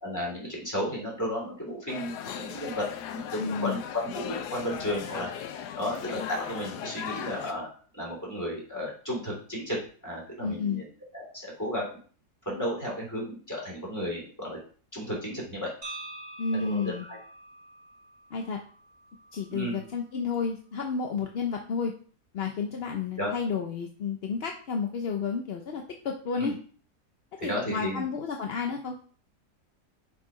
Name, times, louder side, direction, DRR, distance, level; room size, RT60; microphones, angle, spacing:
voice 1, 0.0-5.3 5.7-7.7 7.9-10.9 11.1-11.9 12.4-14.6 14.9-15.7 16.5-17.2 19.5-19.8 23.2-23.3 26.4-26.5 27.4-28.0, equal, 10° left, -3 dB, 2.9 m, -33 dB
sound 1, 1.9-7.5, left 9 dB, 90° left, 1.3 m, -38 dB
voice 2, 3.4-3.8 10.4-10.8 16.4-17.1 18.3-18.6 19.3-21.9 22.3-26.5 27.4-29.0, left 5 dB, 60° left, 3 dB, 0.7 m, -31 dB
sound 2, 15.8-19.9, right 2 dB, 20° right, 1.3 m, -46 dB
6.1 x 4.1 x 4.9 m, 0.43 s
omnidirectional pair, 1.7 m